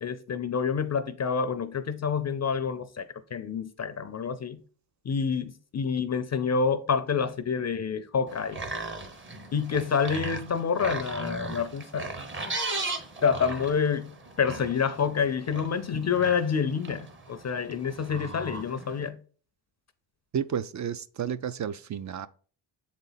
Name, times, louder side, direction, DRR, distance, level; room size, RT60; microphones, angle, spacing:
voice 1, 0.0-3.1 3.3-4.6 5.0-8.6 9.5-12.1 13.2-19.2, left 6 dB, 35° left, 0.5 m, -28 dB
sound 1, 8.3-19.1, right 3 dB, 25° right, 0.8 m, -37 dB
voice 2, 20.3-22.3, right 8 dB, 40° right, 0.4 m, -31 dB
7.3 x 4.1 x 3.9 m
cardioid pair, 125°, 46 cm